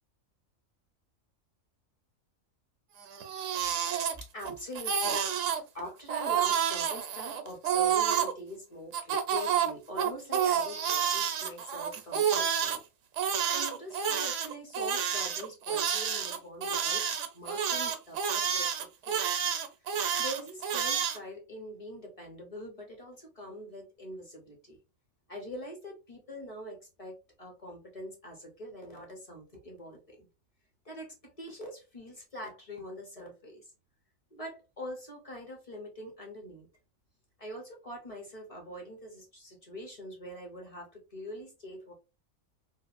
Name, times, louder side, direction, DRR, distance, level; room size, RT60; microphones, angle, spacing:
Crying sobbing, 3.0-4.5 4.7-5.6 6.1-8.3 8.9-12.8 13.2-21.2, right 8 dB, 75° right, 0.9 m, -29 dB
voice 1, 4.2-5.2 5.7-12.8 13.5-17.1 17.3-19.2 19.8-24.8 25.3-30.3 30.8-33.7 34.3-36.7 37.4-41.9, equal, 30° left, 1 dB, 0.8 m, -44 dB
2.9 x 2.4 x 2.4 m, 0.28 s
omnidirectional pair, 1.3 m